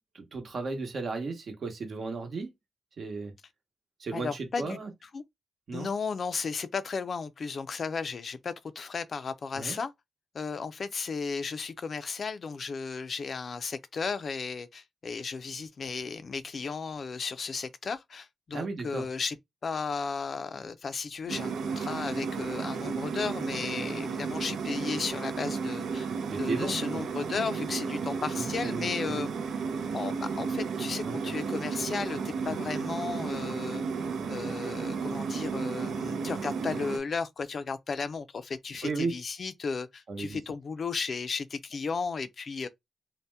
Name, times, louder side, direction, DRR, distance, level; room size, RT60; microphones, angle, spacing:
voice 1, 0.1-2.5 3.0-3.3 4.0-4.9 5.7-5.9 9.5-9.8 18.5-19.0 26.2-26.7 28.4-29.2 31.0-31.3 38.8-39.1 40.1-40.4, right 4 dB, 60° right, 0.9 m, -35 dB
voice 2, 4.1-4.8 5.1-5.2 5.7-9.9 10.3-19.4 19.6-26.1 26.4-29.3 29.9-33.9 34.3-42.7, left 5 dB, 55° left, 0.4 m, -34 dB
sound 1, 21.3-37.0, right 5 dB, 85° right, 0.4 m, -33 dB
2.7 x 2.1 x 3.3 m
cardioid pair, 90°, 0 cm